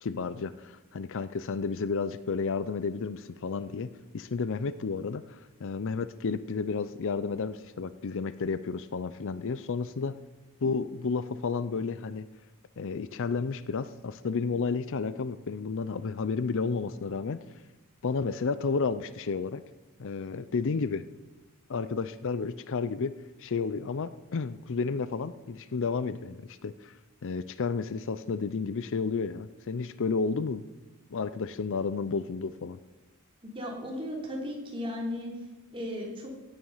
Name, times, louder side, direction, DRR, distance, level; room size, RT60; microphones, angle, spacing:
voice 1, 0.0-3.9 4.1-10.2 10.6-12.3 12.8-17.4 18.0-19.6 20.0-21.0 21.7-23.1 23.4-26.9 27.2-30.6 31.1-32.8, left 4 dB, 60° left, 14 dB, 0.5 m, -31 dB
voice 2, 33.5-35.3 35.7-36.3, left 1 dB, 25° right, -1 dB, 3.2 m, -35 dB
16.0 x 9.1 x 5.6 m, 1.1 s
head